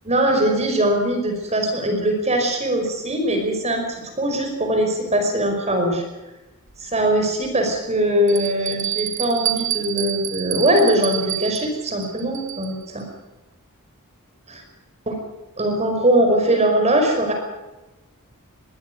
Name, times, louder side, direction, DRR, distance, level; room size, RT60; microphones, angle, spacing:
voice 1, 0.1-6.0 6.8-13.1 14.5-14.6 15.1-15.2 15.6-17.3, right 1 dB, 30° right, 3 dB, 5.2 m, -21 dB
Bell, 6.7-6.8 7.4-7.5 8.3-12.8, right 12 dB, 60° right, 1.8 m, -28 dB
22.0 x 15.0 x 9.4 m, 1.0 s
head